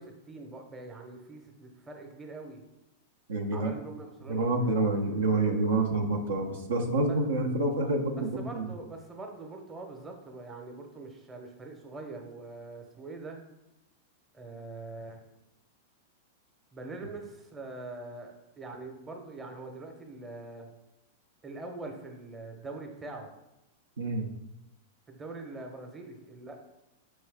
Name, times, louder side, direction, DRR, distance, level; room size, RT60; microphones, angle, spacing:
voice 1, 0.0-2.6 3.5-5.0 7.0-7.2 8.4-13.4 14.3-15.2 16.7-20.7 21.4-23.3 25.1-26.6, right 3 dB, 20° right, 3 dB, 0.8 m, -43 dB
voice 2, 3.3-3.7 4.3-8.7 24.0-24.3, right 2 dB, 75° right, 2 dB, 0.6 m, -28 dB
4.6 x 3.1 x 3.4 m, 0.92 s
figure-of-eight pair, 95°, 0 cm